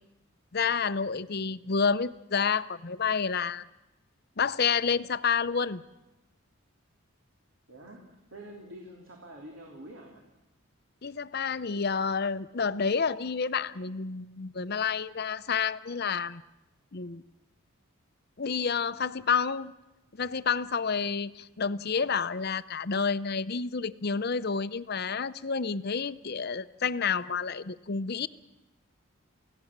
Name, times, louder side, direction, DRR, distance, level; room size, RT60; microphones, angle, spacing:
voice 1, 0.5-3.7 4.4-5.8 11.0-16.4 16.9-17.2 18.4-19.7 20.2-28.3, left 5 dB, 45° left, 14 dB, 0.7 m, -29 dB
voice 2, 1.2-1.6 7.7-10.2, right 1 dB, 65° right, 1 dB, 3.3 m, -47 dB
28.5 x 17.0 x 7.4 m, 0.97 s
head